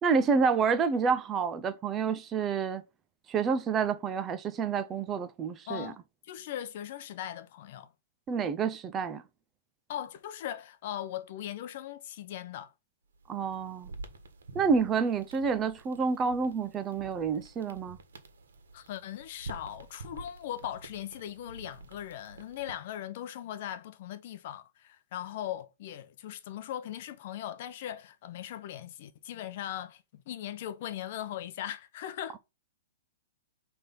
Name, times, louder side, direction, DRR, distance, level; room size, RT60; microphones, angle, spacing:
voice 1, 0.0-2.8 3.3-5.9 8.3-9.2 13.3-13.9 14.5-18.0, right 5 dB, 15° right, 0.5 m, -28 dB
voice 2, 5.7-6.0 6.3-7.9 9.9-12.7 18.7-32.4, left 11 dB, 45° left, 0.7 m, -39 dB
sound 1, 13.1-22.9, right 3 dB, 90° right, 1.5 m, -48 dB
5.8 x 3.5 x 5.2 m
hypercardioid pair, 165°, 0 cm